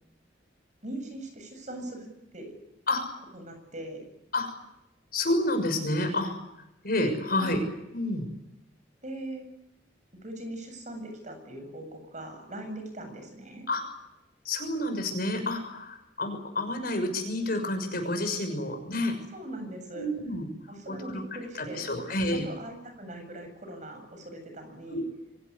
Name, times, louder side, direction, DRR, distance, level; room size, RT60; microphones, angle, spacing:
voice 1, 0.8-2.1 2.3-2.5 3.3-4.1 7.4-7.6 9.0-9.4 10.2-13.7 18.9-19.0 19.3-20.1 20.7-25.0, right 1 dB, 40° right, 6 dB, 7.7 m, -40 dB
voice 2, 5.1-6.5 6.8-7.6 7.9-8.3 13.7-13.9 14.4-19.1 19.9-20.5 20.9-21.2 21.5-22.4 24.9-25.0, left 1 dB, 55° left, 5 dB, 6.3 m, -29 dB
25.5 x 17.0 x 9.9 m, 0.88 s
head